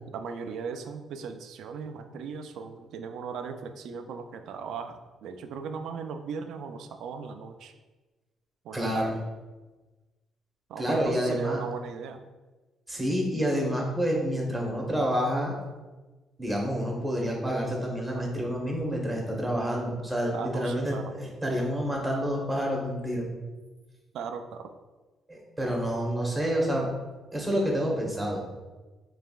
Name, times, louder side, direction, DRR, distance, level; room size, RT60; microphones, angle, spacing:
voice 1, 0.1-7.7 8.6-9.2 10.7-12.2 20.3-21.1 24.1-24.7, right 5 dB, 80° right, 7 dB, 0.3 m, -37 dB
voice 2, 8.7-9.2 10.8-11.6 12.9-15.5 16.4-23.3 25.3-26.9 27.3-28.5, equal, 15° right, -1 dB, 1.1 m, -28 dB
4.6 x 3.2 x 2.4 m, 1.2 s
cardioid pair, 90°, 0 cm